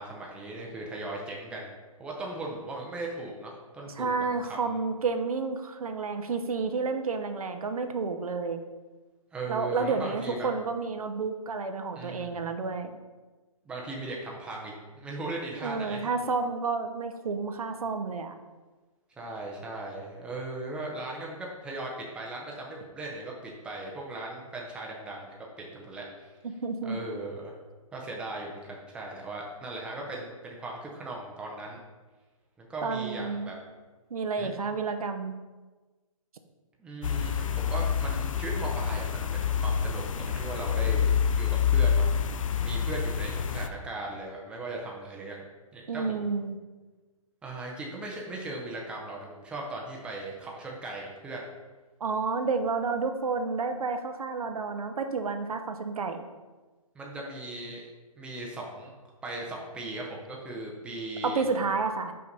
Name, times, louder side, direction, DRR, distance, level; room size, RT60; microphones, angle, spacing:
voice 1, 0.0-1.7 2.0-4.7 9.3-10.5 11.9-12.5 13.6-16.1 19.2-26.4 26.9-27.5 27.9-31.8 32.6-33.5 34.4-34.5 36.8-41.1 41.4-42.1 42.6-45.4 45.7-46.3 47.4-51.5 56.9-57.8 58.2-58.9 59.2-61.4, right 2 dB, 5° right, -2 dB, 0.7 m, -38 dB
voice 2, 4.0-8.6 9.5-12.9 15.5-18.4 26.4-27.0 32.8-33.5 34.1-35.4 45.9-46.6 52.0-56.2 61.2-62.1, right 4 dB, 80° right, 7 dB, 0.8 m, -30 dB
sound 1, 37.0-43.7, left 7 dB, 65° left, 0.5 m, -27 dB
5.7 x 5.0 x 4.0 m, 1.3 s
hypercardioid pair, 150°, 18 cm